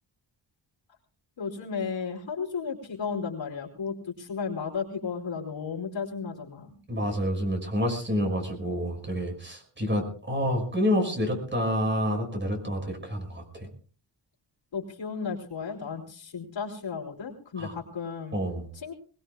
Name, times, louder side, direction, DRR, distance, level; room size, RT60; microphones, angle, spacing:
voice 1, 1.4-6.8 14.7-18.4 18.7-18.9, left 5 dB, 80° left, -1 dB, 4.2 m, -34 dB
voice 2, 6.9-13.7 17.6-17.7 18.3-18.7, equal, 25° right, 4 dB, 5.6 m, -28 dB
22.5 x 21.5 x 2.3 m, 0.40 s
wide cardioid pair, 120°, 45 cm